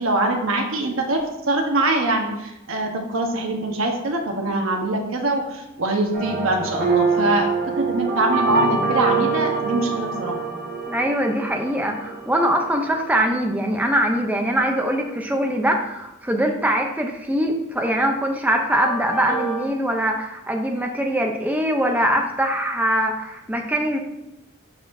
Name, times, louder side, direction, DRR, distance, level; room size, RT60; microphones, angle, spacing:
voice 1, 0.0-10.4, right 2 dB, 70° right, 2 dB, 1.1 m, -23 dB
sound 1, 6.1-13.3 18.7-19.7, right 4 dB, 50° right, 1.2 m, -25 dB
voice 2, 10.9-24.0, right 1 dB, 10° right, 2 dB, 0.5 m, -22 dB
12.0 x 4.2 x 2.6 m, 0.89 s
head